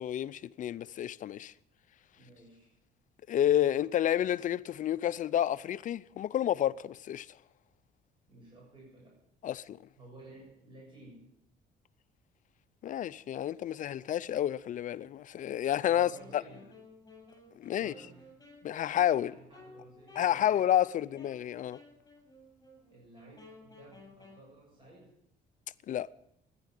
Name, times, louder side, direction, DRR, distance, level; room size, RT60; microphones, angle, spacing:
voice 1, 0.0-1.5 3.3-7.3 9.4-9.8 12.8-16.4 17.6-17.9 18.6-19.3 20.2-21.8 25.9-26.1, left 11 dB, 50° left, 0.5 m, -30 dB
voice 2, 2.2-2.8 8.3-9.2 10.0-11.3 15.8-16.7 17.8-18.3 19.3-20.6 21.0-21.2 22.9-25.1, right 2 dB, 30° right, 7.2 m, -54 dB
Wind instrument woodwind instrument, 16.1-24.5, left 2 dB, 20° left, 7.5 m, -55 dB
14.5 x 10.5 x 9.2 m
cardioid pair, 110°, 17 cm